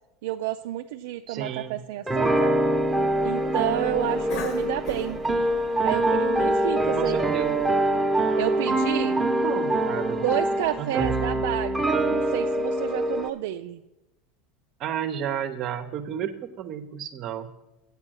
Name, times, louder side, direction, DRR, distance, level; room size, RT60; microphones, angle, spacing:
voice 1, 0.2-2.5 3.2-5.2 5.8-7.3 8.4-9.2 10.2-13.8, right 13 dB, 80° right, 8 dB, 0.3 m, -30 dB
voice 2, 1.3-1.8 7.0-7.5 9.2-10.2 10.8-11.1 14.8-17.5, right 9 dB, 50° right, 7 dB, 0.7 m, -32 dB
sound 1, 2.1-13.3, right 1 dB, 10° right, 0.9 m, -24 dB
Cough, 2.2-7.7, left 4 dB, 55° left, 1.7 m, -42 dB
8.2 x 7.5 x 6.3 m, 1.0 s
supercardioid pair, 115°, 0 cm